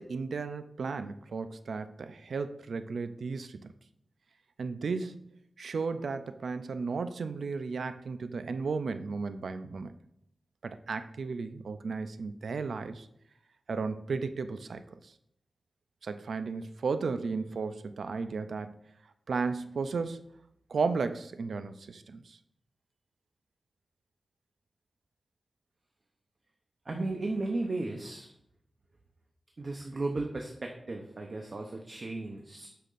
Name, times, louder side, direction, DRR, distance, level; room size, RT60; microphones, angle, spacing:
voice 1, 0.0-3.7 4.6-9.9 10.6-13.1 13.7-15.1 16.0-18.8 19.3-20.2 20.7-22.4, right 4 dB, 80° right, 10 dB, 0.4 m, -34 dB
voice 2, 26.9-28.3 29.6-32.7, right 2 dB, 45° right, 2 dB, 0.7 m, -35 dB
8.3 x 5.7 x 2.5 m, 0.74 s
wide cardioid pair, 135°, 0 cm